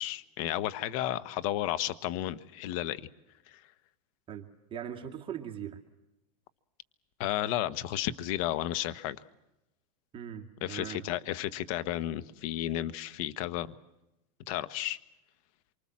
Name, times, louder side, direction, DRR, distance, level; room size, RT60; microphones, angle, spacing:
voice 1, 0.0-3.0 3.5-3.6 7.2-9.2 10.6-13.7 14.5-15.0, left 13 dB, 55° left, 14 dB, 1.3 m, -33 dB
voice 2, 4.3-5.8 10.1-11.1, right 9 dB, 25° right, 3 dB, 2.3 m, -40 dB
27.0 x 24.5 x 7.5 m, 0.93 s
hypercardioid pair, 125°, 20 cm